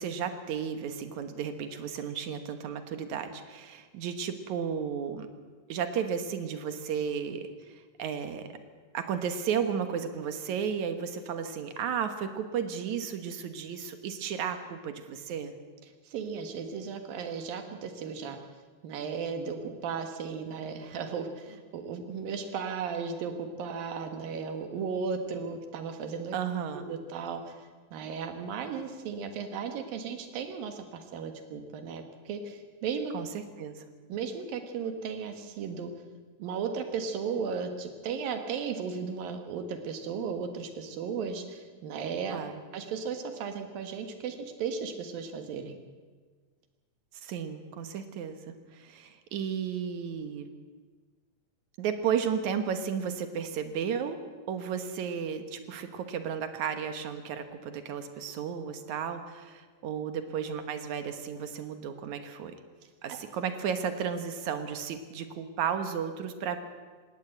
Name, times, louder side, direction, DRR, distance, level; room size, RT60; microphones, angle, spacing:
voice 1, 0.0-5.3 5.7-8.6 8.9-15.6 26.3-26.9 33.1-33.8 42.3-42.5 47.2-50.5 51.8-54.2 54.5-62.6 63.0-66.6, right 7 dB, 65° right, 8 dB, 2.5 m, -33 dB
voice 2, 16.1-18.4 18.8-26.3 26.7-33.1 34.1-35.9 36.4-42.4 42.7-45.8 63.1-63.2, right 6 dB, 85° right, 6 dB, 3.4 m, -35 dB
19.5 x 17.5 x 8.0 m, 1.5 s
omnidirectional pair, 3.9 m